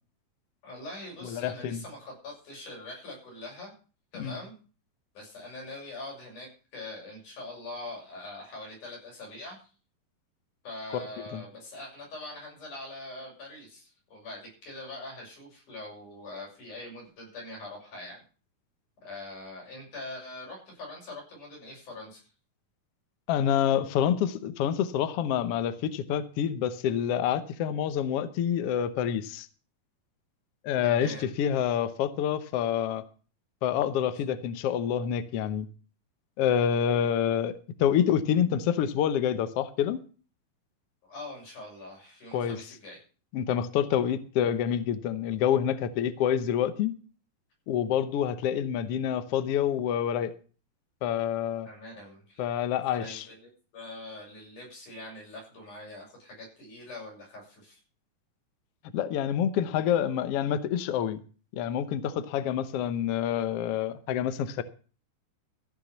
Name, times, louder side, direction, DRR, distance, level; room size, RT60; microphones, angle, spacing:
voice 1, 0.6-3.7 4.1-4.5 5.1-9.7 10.6-18.2 19.0-22.2 30.8-31.3 41.0-43.0 51.6-52.5 52.9-57.8, left 2 dB, 65° left, 8.3 m, -43 dB
voice 2, 1.3-1.8 4.2-4.4 10.9-11.0 11.3-11.4 23.3-29.5 30.6-33.0 33.6-35.7 36.4-37.5 37.8-40.0 42.3-42.6 43.3-46.9 47.7-50.3 51.0-51.7 52.4-53.2 58.9-61.2 61.5-64.6, left 9 dB, 85° left, 1.3 m, -27 dB
15.0 x 6.1 x 7.1 m
omnidirectional pair, 3.9 m